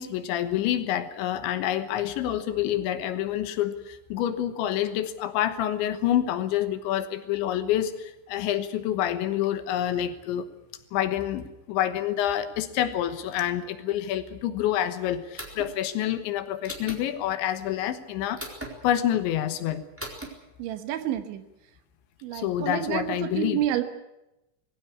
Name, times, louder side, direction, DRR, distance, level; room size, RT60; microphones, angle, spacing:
voice 1, 0.0-10.5 10.9-18.4 18.8-19.8 22.3-23.6, left 11 dB, 75° left, 11 dB, 3.4 m, -27 dB
sound 1, 15.4-15.7 16.6-17.0 18.4-18.7 20.0-20.3, right 1 dB, 5° right, 3.2 m, -37 dB
voice 2, 20.6-21.4 22.2-23.8, right 11 dB, 75° right, 9 dB, 3.5 m, -29 dB
21.0 x 17.0 x 9.8 m, 0.92 s
omnidirectional pair, 5.6 m